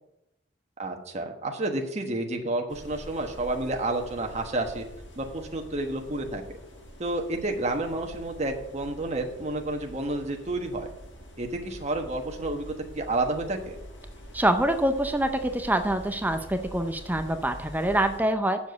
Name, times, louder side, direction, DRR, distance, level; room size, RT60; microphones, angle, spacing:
voice 1, 0.8-4.8 5.2-6.4 7.0-10.9 11.4-12.7 12.9-13.8, right 2 dB, 40° right, 2 dB, 1.2 m, -30 dB
sound 1, 2.7-18.2, equal, 75° left, 4.5 m, -45 dB
voice 2, 14.3-18.6, right 1 dB, 10° right, 7 dB, 0.6 m, -25 dB
7.3 x 7.1 x 8.0 m, 0.84 s
head